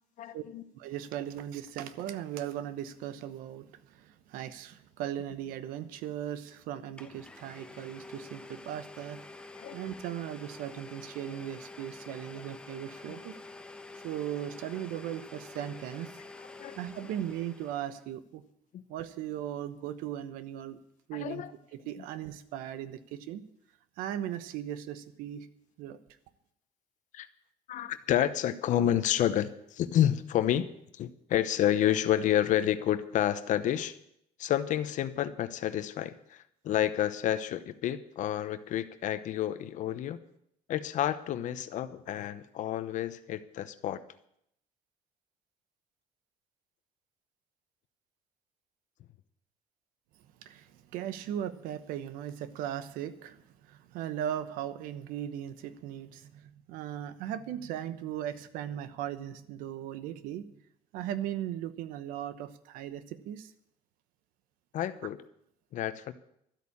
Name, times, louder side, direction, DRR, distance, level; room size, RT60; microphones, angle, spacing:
voice 1, 0.2-0.6 9.6-9.7 13.1-13.2 16.5-16.8 18.7-18.8 21.1-21.5 27.1-27.3 27.7-30.7 30.9-34.0 34.4-40.2 40.7-44.0 64.7-65.2 65.7-66.1, left 11 dB, 60° left, 12 dB, 0.9 m, -29 dB
voice 2, 0.7-9.2 9.7-13.3 14.0-16.1 16.8-18.4 18.9-20.8 21.1-21.4 21.9-23.4 24.0-25.5 25.8-26.0 50.4-60.5 60.9-63.5, right 11 dB, 80° right, 13 dB, 1.0 m, -38 dB
Domestic sounds home sounds, 6.5-6.6 7.0-18.0, left 3 dB, 5° left, 1.2 m, -48 dB
12.5 x 8.4 x 8.6 m, 0.74 s
cardioid pair, 110°, 14 cm